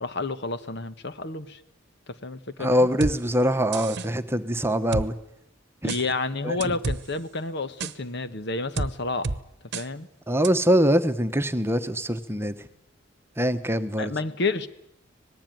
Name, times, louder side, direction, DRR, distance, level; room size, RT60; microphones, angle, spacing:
voice 1, 0.0-1.6 2.1-2.9 5.8-9.3 9.7-10.1 14.0-14.7, left 3 dB, 60° left, 12 dB, 1.3 m, -30 dB
voice 2, 2.6-5.1 5.8-5.9 6.4-6.6 10.3-12.5 13.4-14.1, equal, 10° right, 10 dB, 1.1 m, -23 dB
sound 1, 3.0-3.2 3.7-4.1 4.9-5.1 5.9-6.0 6.6-7.0 7.8-7.9 8.8-8.9 9.2-9.4 9.7-9.9 10.4-10.5, right 3 dB, 60° right, 1.0 m, -28 dB
25.5 x 19.5 x 9.3 m, 0.81 s
head